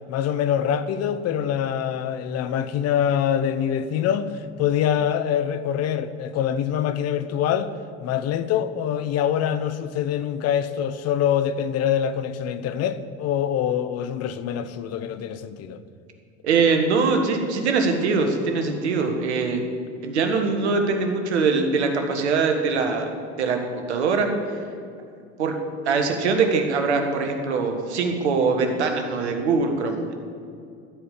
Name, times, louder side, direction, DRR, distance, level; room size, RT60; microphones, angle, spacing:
voice 1, 0.1-7.7 8.0-15.8, left 9 dB, 50° left, 0.8 m, -24 dB
voice 2, 16.4-19.6 20.0-23.1 23.4-24.3 25.4-25.5 25.8-30.1, right 4 dB, 85° right, 1.4 m, -22 dB
14.0 x 5.1 x 8.4 m
hypercardioid pair, 75°, 33 cm